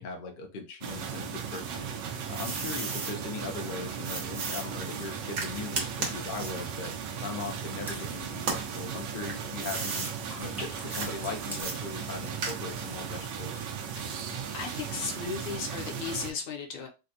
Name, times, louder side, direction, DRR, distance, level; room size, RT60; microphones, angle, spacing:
voice 1, 0.0-1.9 2.3-6.9 7.2-10.1 10.4-13.6, left 4 dB, 80° left, 2 dB, 0.5 m, -39 dB
sound 1, 0.8-16.3, right 7 dB, 80° right, 1.2 m, -37 dB
sound 2, 2.3-3.1 4.0-7.9 8.4-10.1 10.9-11.1 11.6-12.9, right 4 dB, 55° right, 1.1 m, -35 dB
sound 3, 6.2-10.0 10.3-11.6, equal, 5° right, 0.3 m, -47 dB
voice 2, 14.5-16.9, left 5 dB, 60° left, 1 dB, 1.0 m, -36 dB
4.0 x 2.2 x 2.6 m, 0.29 s
omnidirectional pair, 1.9 m